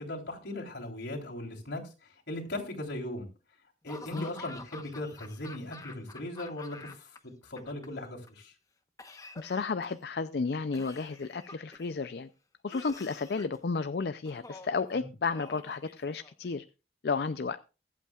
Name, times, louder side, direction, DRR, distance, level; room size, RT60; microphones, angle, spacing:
voice 1, 0.0-3.3 3.8-8.5 14.9-15.1, left 1 dB, 85° left, -1 dB, 3.6 m, -39 dB
Laughter / Cough, 3.9-7.2 7.4-8.3 9.0-10.1 10.7-11.9 12.7-13.6 14.2-14.8 15.3-16.5, left 3 dB, 20° left, 1.0 m, -48 dB
voice 2, 9.4-12.3 12.6-16.6 17.0-17.6, left 4 dB, 65° left, 12 dB, 0.5 m, -32 dB
23.5 x 8.3 x 2.4 m, 0.32 s
head